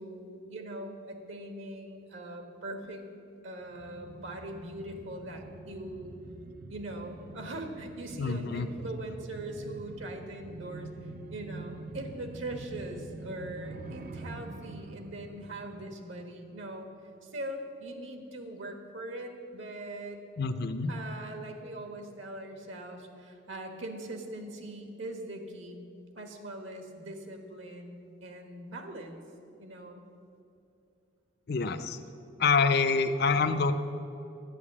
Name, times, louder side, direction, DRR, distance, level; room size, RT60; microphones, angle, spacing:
voice 1, 0.0-3.0 3.4-6.2 6.7-10.9 11.3-16.9 17.2-20.2 20.9-25.8 26.1-29.2 29.6-30.0, right 1 dB, 70° right, 5 dB, 1.3 m, -41 dB
sound 1, 3.6-16.9 17.2-17.3, right 2 dB, 45° right, 0.5 m, -46 dB
voice 2, 8.2-8.7 20.4-20.9 31.5-32.0 32.4-33.7, left 4 dB, 50° left, 8 dB, 0.5 m, -26 dB
11.5 x 9.1 x 7.4 m, 2.7 s
head